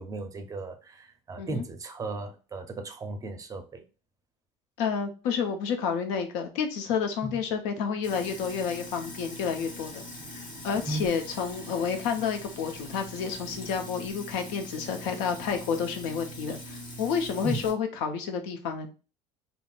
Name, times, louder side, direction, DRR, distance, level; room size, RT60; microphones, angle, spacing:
voice 1, 0.0-3.8 7.2-7.4 10.9-11.0 17.4-17.6, right 2 dB, 25° right, 0.5 m, -35 dB
voice 2, 4.8-10.1 10.3-18.9, left 6 dB, 80° left, 0.6 m, -30 dB
Sink (filling or washing), 8.0-17.7, left 1 dB, 30° left, 1.3 m, -42 dB
3.6 x 2.0 x 2.3 m
supercardioid pair, 110°, 15 cm